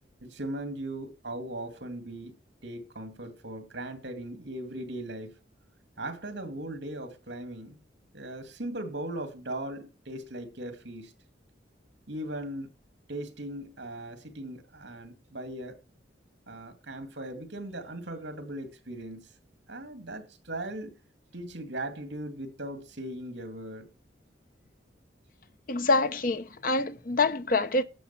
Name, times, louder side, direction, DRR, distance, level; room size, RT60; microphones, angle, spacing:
voice 1, 0.2-2.4 2.6-5.3 6.0-7.8 8.1-11.1 12.1-12.7 13.1-15.8 16.5-19.3 19.7-21.0 21.3-23.9, right 1 dB, 70° right, 2.5 m, -38 dB
voice 2, 25.7-27.8, left 3 dB, 45° left, 0.8 m, -26 dB
11.5 x 8.2 x 6.1 m
head